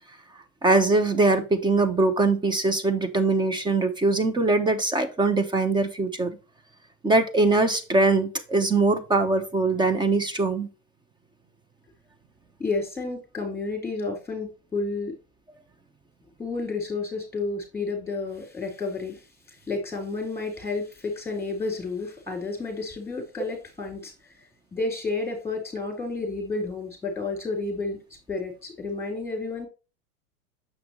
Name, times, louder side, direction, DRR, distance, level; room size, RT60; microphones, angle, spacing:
voice 1, 0.6-6.4 7.0-10.7, right 3 dB, 10° right, 1.0 m, -22 dB
voice 2, 12.6-15.2 16.4-28.0 28.3-29.7, left 3 dB, 5° left, 3.8 m, -31 dB
7.3 x 5.8 x 3.1 m
hypercardioid pair, 115°, 45 cm